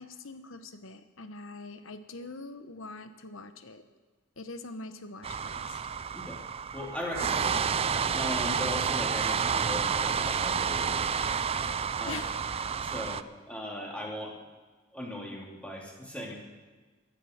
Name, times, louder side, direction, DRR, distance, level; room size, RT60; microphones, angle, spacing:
voice 1, 0.0-3.8 4.4-5.8 12.1-12.4, left 3 dB, 70° left, 10 dB, 1.0 m, -43 dB
sound 1, 5.2-13.2, right 6 dB, 30° right, 0.4 m, -30 dB
voice 2, 6.7-7.6 8.1-11.2 12.0-12.2 12.7-14.4 14.9-16.4, left 1 dB, 5° left, -2 dB, 2.6 m, -38 dB
15.0 x 12.0 x 6.5 m, 1.3 s
head